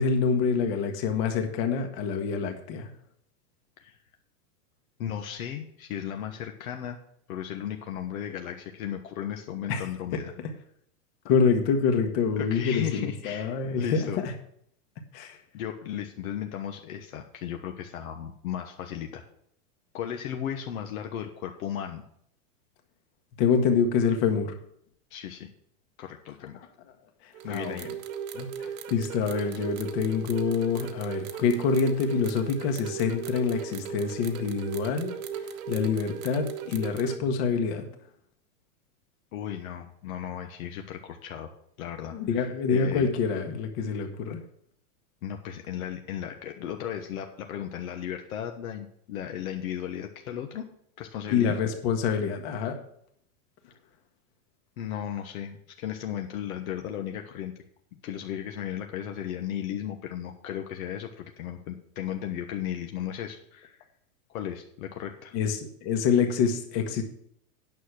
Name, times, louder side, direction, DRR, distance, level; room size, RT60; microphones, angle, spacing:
voice 1, 0.0-2.9 9.7-9.8 10.1-10.2 11.2-14.3 15.1-15.4 23.4-24.5 27.5-27.9 28.3-28.5 28.9-35.2 35.7-37.9 42.1-44.4 51.3-52.8 65.3-67.0, left 5 dB, 45° left, 5 dB, 1.6 m, -26 dB
voice 2, 5.0-7.0 7.3-10.3 12.4-14.2 15.5-19.2 19.9-22.0 25.1-25.5 26.0-26.6 27.4-27.9 39.3-41.5 41.8-43.1 45.2-50.6 51.0-51.6 54.8-57.5 58.0-63.8 64.3-65.3, left 10 dB, 65° left, 4 dB, 1.2 m, -35 dB
sound 1, 27.3-37.2, right 8 dB, 60° right, 1.2 m, -37 dB
9.3 x 6.7 x 5.9 m, 0.68 s
supercardioid pair, 155°, 45 cm